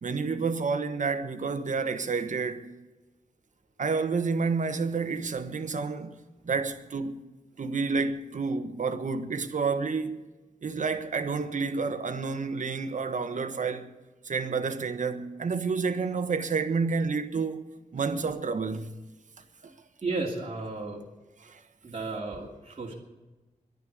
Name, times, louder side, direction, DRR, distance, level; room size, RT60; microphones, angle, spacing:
voice 1, 0.0-2.8 3.8-6.2 6.4-7.2 7.6-10.2 10.6-13.9 14.2-19.0 19.6-19.7 21.4-21.6, right 4 dB, 65° right, 1.3 m, -29 dB
voice 2, 20.0-21.0 21.8-22.9, right 3 dB, 45° right, 2.8 m, -33 dB
11.5 x 11.0 x 9.8 m
wide cardioid pair, 135°, 14 cm